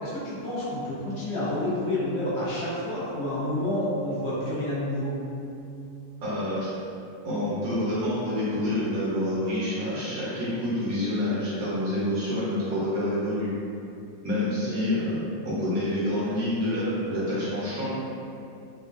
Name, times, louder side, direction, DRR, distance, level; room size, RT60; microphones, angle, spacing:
voice 1, 0.0-5.2 12.5-12.6 14.6-14.8, left 1 dB, 75° left, -9 dB, 0.6 m, -29 dB
voice 2, 6.2-6.7 7.2-13.5 14.2-18.0, left 1 dB, 65° right, -9 dB, 1.0 m, -27 dB
3.0 x 2.1 x 2.4 m, 2.6 s
omnidirectional pair, 1.9 m